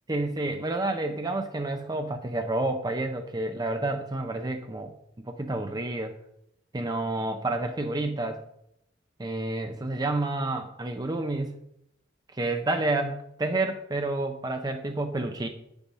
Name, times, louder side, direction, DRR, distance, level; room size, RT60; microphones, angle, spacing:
voice 1, 0.1-6.1 6.7-8.4 9.2-11.5 12.3-15.5, right 2 dB, 20° right, 6 dB, 0.6 m, -29 dB
7.6 x 7.0 x 5.5 m, 0.77 s
head